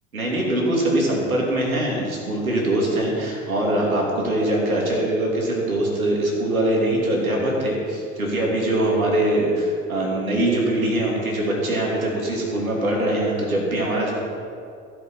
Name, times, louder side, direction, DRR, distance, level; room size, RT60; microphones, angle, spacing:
voice 1, 0.1-14.1, right 1 dB, 90° right, -3 dB, 2.9 m, -22 dB
15.5 x 7.9 x 5.8 m, 2.3 s
hypercardioid pair, 70°, 41 cm